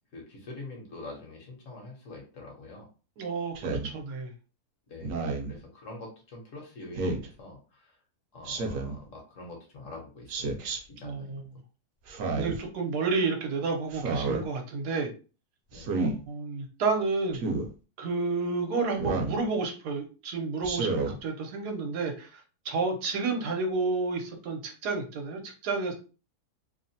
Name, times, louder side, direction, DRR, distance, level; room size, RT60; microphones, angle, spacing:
voice 1, 0.1-2.9 4.9-5.2 5.5-8.0 8.3-11.5 15.7-16.0, left 2 dB, 55° left, 0 dB, 1.1 m, -45 dB
voice 2, 3.2-4.3 11.0-11.4 12.3-15.1 16.0-17.6 18.0-25.9, right 3 dB, 85° right, 2 dB, 1.2 m, -31 dB
Speech synthesizer, 3.6-3.9 5.0-5.5 6.9-7.3 8.4-9.0 10.3-10.8 12.1-12.6 13.9-14.4 15.7-16.1 17.3-17.7 19.0-19.4 20.6-21.1, right 3 dB, 65° right, 0.9 m, -30 dB
3.0 x 2.1 x 2.6 m, 0.34 s
omnidirectional pair, 1.7 m